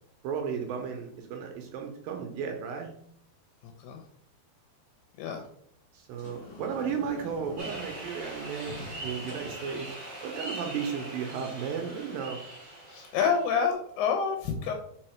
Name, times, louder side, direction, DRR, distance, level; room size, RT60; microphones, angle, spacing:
voice 1, 0.2-2.9 5.9-10.0 10.2-12.4, right 6 dB, 80° right, 3 dB, 2.1 m, -34 dB
voice 2, 3.6-4.0 5.2-5.5 12.9-14.7, left 6 dB, 80° left, 4 dB, 2.7 m, -28 dB
Sliding door, 6.1-11.3, left 2 dB, 45° left, 2.3 m, -47 dB
sound 1, 7.6-13.7, right 1 dB, 20° right, 1.9 m, -42 dB
5.0 x 4.8 x 4.4 m, 0.67 s
omnidirectional pair, 4.8 m